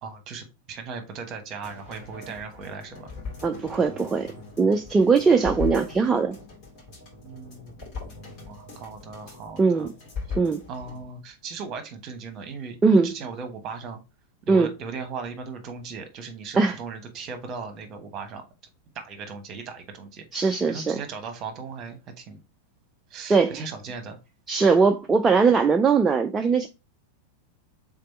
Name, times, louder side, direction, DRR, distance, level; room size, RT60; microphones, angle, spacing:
voice 1, 0.0-3.1 7.2-9.9 10.3-10.4 10.7-12.8 13.0-14.0 14.4-18.4 18.9-22.4 23.1-24.2, right 5 dB, 35° right, 1.1 m, -38 dB
sound 1, 1.6-11.1 11.4-11.5, left 5 dB, 45° left, 2.6 m, -39 dB
voice 2, 3.4-6.4 9.6-9.9 10.3-10.6 12.8-13.1 14.5-14.7 16.6-16.8 20.3-21.0 23.3-23.7 24.5-26.7, right 4 dB, 15° right, 0.4 m, -20 dB
3.8 x 3.4 x 4.2 m
figure-of-eight pair, 90°, 0 cm